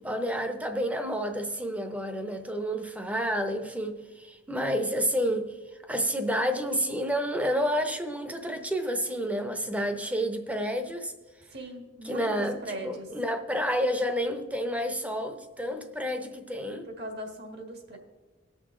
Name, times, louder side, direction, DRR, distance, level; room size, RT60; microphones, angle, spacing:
voice 1, 0.0-5.5 5.9-11.1 12.0-16.9, equal, 5° right, 0.7 m, -30 dB
voice 2, 11.5-13.1 15.7-15.8 16.9-18.0, right 1 dB, 55° right, 1.6 m, -39 dB
18.0 x 6.1 x 3.7 m
head